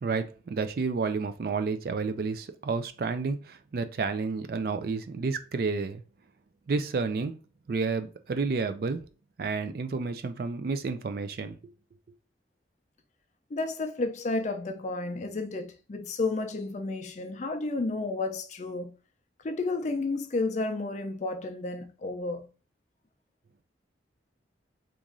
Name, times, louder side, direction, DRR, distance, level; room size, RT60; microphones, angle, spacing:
voice 1, 0.0-6.0 6.7-7.3 7.7-9.0 9.4-11.6, right 4 dB, 55° right, 0.4 m, -30 dB
voice 2, 13.5-18.9 19.4-22.5, left 3 dB, 40° left, 0.4 m, -31 dB
3.0 x 2.5 x 3.7 m
head